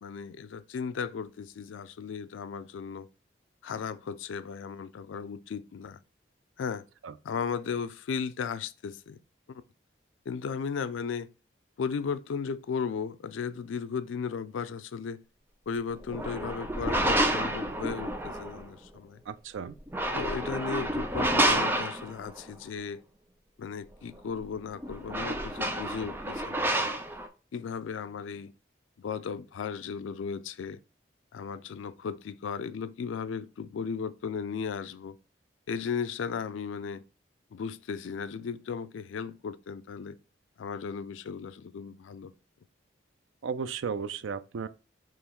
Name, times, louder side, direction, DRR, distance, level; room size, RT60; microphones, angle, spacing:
voice 1, 0.0-3.1 3.6-6.0 6.6-6.8 7.2-9.2 10.3-11.3 11.8-15.2 15.7-19.2 20.1-23.0 23.6-26.9 27.5-28.5 29.0-30.8 31.3-35.2 35.7-37.0 37.5-40.2 40.6-42.3, left 6 dB, 90° left, 0.4 m, -35 dB
sound 1, 16.0-18.6 19.7-22.4 24.4-24.5 24.7-27.3, right 1 dB, 10° right, 0.5 m, -29 dB
voice 2, 19.3-19.7 43.4-44.7, right 6 dB, 90° right, 0.4 m, -34 dB
3.8 x 3.0 x 4.3 m
head